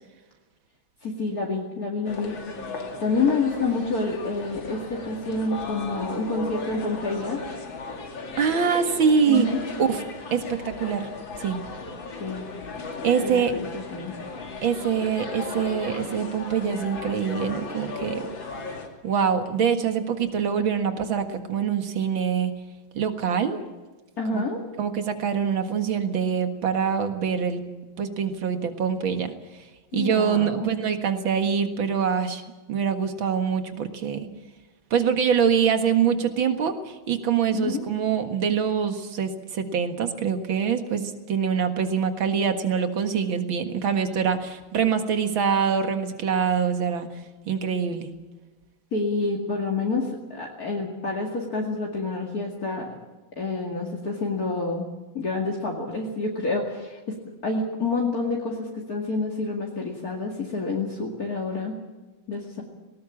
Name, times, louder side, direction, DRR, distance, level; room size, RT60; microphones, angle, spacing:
voice 1, 1.0-2.3 3.0-7.4 9.3-9.6 12.2-12.5 13.2-14.1 24.2-24.6 29.9-30.7 37.5-37.9 48.9-52.9 53.4-54.9 55.1-57.2 57.4-61.8 62.3-62.6, left 3 dB, 45° left, -1 dB, 2.8 m, -28 dB
sound 1, 2.1-18.9, left 3 dB, 70° left, 3.2 m, -36 dB
voice 2, 8.4-9.5 9.8-10.0 10.3-11.1 11.4-11.6 13.0-13.5 14.6-18.3 19.0-22.6 23.0-23.6 24.3-24.4 24.8-27.7 28.0-29.3 29.9-32.4 32.7-34.3 34.9-47.1 47.5-48.1, right 7 dB, 75° right, 7 dB, 2.5 m, -24 dB
19.0 x 19.0 x 8.6 m, 1.2 s
omnidirectional pair, 2.2 m